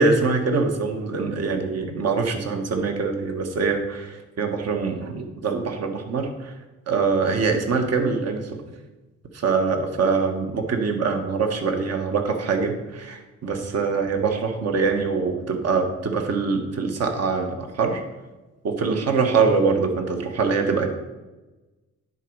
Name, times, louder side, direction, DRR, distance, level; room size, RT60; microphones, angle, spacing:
voice 1, 0.0-6.5 6.9-8.5 9.3-18.0 18.6-20.9, right 4 dB, 55° right, 4 dB, 1.4 m, -23 dB
10.0 x 4.1 x 4.7 m, 1.1 s
cardioid pair, 90°, 30 cm